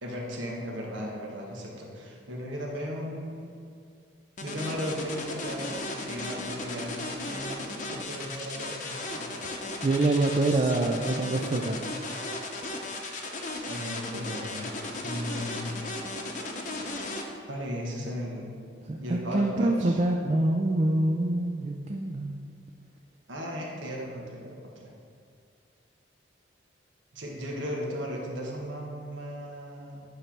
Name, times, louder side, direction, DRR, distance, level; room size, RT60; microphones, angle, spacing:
voice 1, 0.0-3.5 4.4-9.3 13.7-14.7 15.0-15.7 17.5-18.5 19.0-20.0 23.3-24.9 27.1-30.0, equal, 80° right, -2 dB, 1.4 m, -36 dB
sound 1, 4.4-17.2, left 2 dB, 40° left, 0.7 m, -36 dB
voice 2, 9.8-11.8 18.9-22.3, right 2 dB, 35° right, 2 dB, 0.4 m, -25 dB
9.3 x 3.3 x 5.9 m, 2.3 s
head